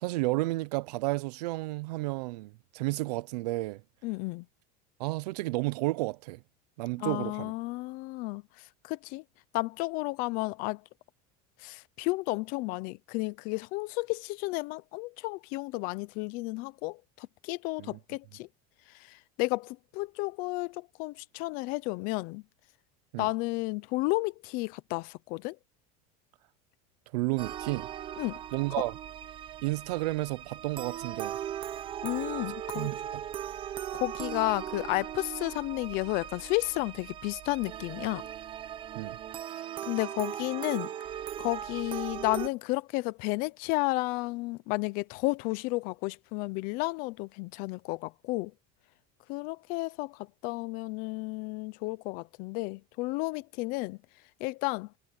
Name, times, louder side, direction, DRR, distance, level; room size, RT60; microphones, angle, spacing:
voice 1, 0.0-3.8 5.0-6.4 6.8-7.5 17.8-18.0 23.1-23.3 27.1-27.9 28.5-28.9 29.6-31.4 32.7-33.2 38.9-39.2, right 21 dB, 85° right, 0.8 m, -32 dB
voice 2, 4.0-4.5 7.0-9.2 9.5-10.8 11.6-18.5 18.9-22.4 23.2-25.6 28.2-28.4 32.0-32.9 33.9-38.2 39.8-40.9 41.4-48.5 49.3-54.0 54.4-54.9, left 23 dB, 45° left, 0.7 m, -32 dB
sound 1, 27.4-42.5, right 10 dB, 25° right, 0.9 m, -39 dB
cardioid pair, 175°, 20 cm